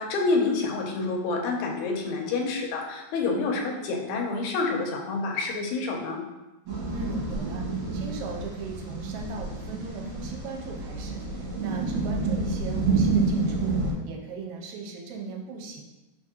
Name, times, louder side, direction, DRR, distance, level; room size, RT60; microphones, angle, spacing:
voice 1, 0.0-6.2, left 3 dB, 85° left, 1 dB, 2.0 m, -28 dB
sound 1, 6.7-13.9, right 3 dB, 55° right, 2.1 m, -28 dB
voice 2, 6.9-13.7 14.1-15.8, right 4 dB, 80° right, 1 dB, 1.9 m, -38 dB
4.5 x 3.5 x 2.8 m, 1.1 s
omnidirectional pair, 3.4 m